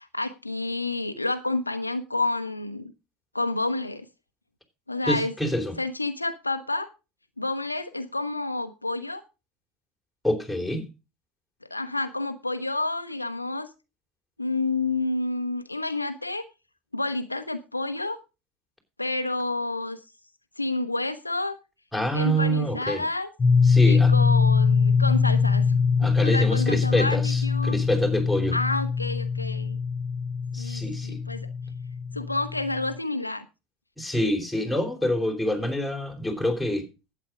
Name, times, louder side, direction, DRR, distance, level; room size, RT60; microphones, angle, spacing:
voice 1, 0.0-2.9 3.3-4.1 4.9-5.3 5.8-6.9 7.4-9.2 11.7-13.7 14.4-16.4 16.9-18.2 19.0-20.0 20.6-21.6 22.1-23.3 23.8-25.9 26.2-27.8 28.5-29.8 30.6-31.5 32.1-33.5, left 2 dB, 90° left, 0.8 m, -29 dB
voice 2, 5.0-5.8 10.2-10.9 21.9-23.0 23.6-24.1 26.0-28.6 30.5-31.2 34.0-36.9, equal, ahead, 3.7 m, -26 dB
sound 1, 23.4-33.0, left 5 dB, 20° left, 2.7 m, -23 dB
11.5 x 8.7 x 5.0 m
figure-of-eight pair, 75°, 0 cm